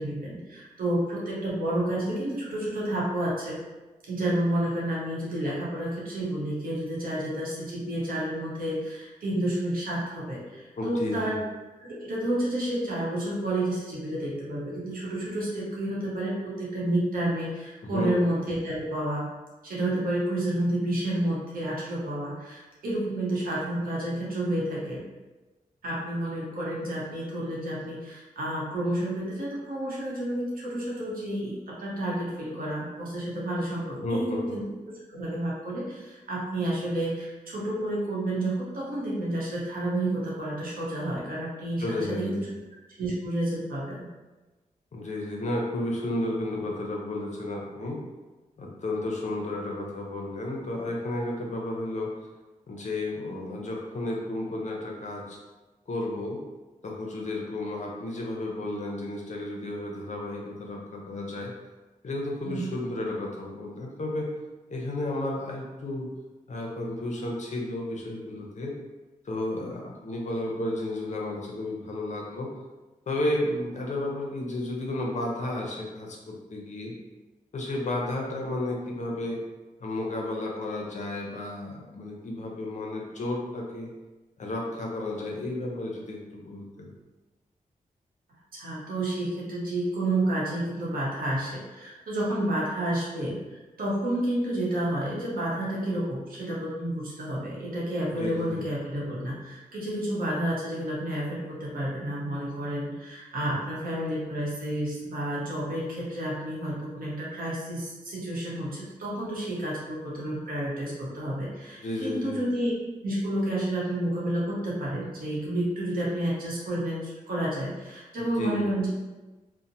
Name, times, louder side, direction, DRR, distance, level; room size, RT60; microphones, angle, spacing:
voice 1, 0.0-3.6 4.1-11.4 11.8-19.3 19.6-25.0 25.8-34.6 35.1-42.3 43.0-44.1 62.4-62.7 88.5-112.7 113.0-118.9, right 1 dB, 90° right, -6 dB, 0.8 m, -30 dB
voice 2, 10.8-11.4 17.8-18.1 34.0-34.6 41.8-42.6 44.9-48.0 48.6-52.1 52.7-55.4 55.9-56.4 56.8-61.5 62.0-64.3 64.7-66.1 66.5-68.8 69.2-72.5 73.1-76.9 77.5-79.4 79.8-83.9 84.4-86.9 98.1-98.6 111.8-112.4 118.2-118.6, left 1 dB, 55° left, -1 dB, 0.6 m, -32 dB
2.8 x 2.0 x 2.6 m, 1.2 s
cardioid pair, 75°, 14 cm